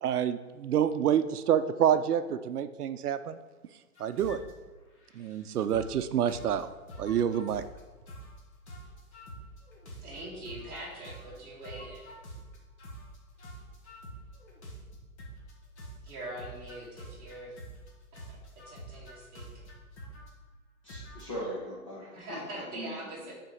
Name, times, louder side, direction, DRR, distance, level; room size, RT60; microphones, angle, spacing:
voice 1, 0.0-3.4 4.0-4.4 5.2-6.7 7.0-7.6, right 9 dB, 80° right, 12 dB, 0.5 m, -27 dB
sound 1, 4.0-4.5 5.0-6.0 6.3-6.6 6.9-7.8 8.1-8.4 8.7-10.8 11.0-15.5 15.8-17.9 18.1-20.3 20.9-21.5, right 1 dB, 45° left, 1.7 m, -46 dB
voice 2, 10.0-12.1 16.0-17.5 18.7-19.5 22.1-23.3, right 1 dB, 10° right, -9 dB, 1.7 m, -42 dB
voice 3, 20.8-23.3, equal, 20° left, -5 dB, 0.8 m, -40 dB
5.4 x 4.3 x 5.5 m, 1.2 s
hypercardioid pair, 165°, 44 cm